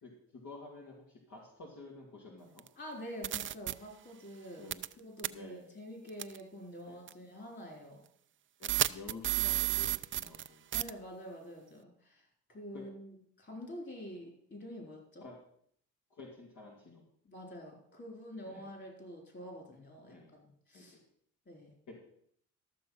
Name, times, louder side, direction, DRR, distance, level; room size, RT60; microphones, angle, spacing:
voice 1, 0.0-2.6 4.6-4.8 5.3-5.8 6.8-7.0 8.6-9.9 10.2-10.6 12.7-12.8 15.2-15.4 16.1-17.0 18.5-18.7 20.1-20.3 20.7-20.8 21.9-22.0, left 3 dB, 70° left, -2 dB, 2.7 m, -50 dB
sound 1, 2.6-2.7 3.2-3.7 4.7-4.9 5.2-5.3 6.2-6.4 7.1-7.2 8.6-10.5 10.7-10.9, right 12 dB, 40° right, 0.4 m, -31 dB
voice 2, 2.8-4.6 5.0-8.0 10.7-15.3 17.2-21.0 21.5-21.8, equal, 35° left, 1 dB, 4.2 m, -47 dB
13.0 x 6.9 x 5.7 m, 0.66 s
cardioid pair, 90°, 30 cm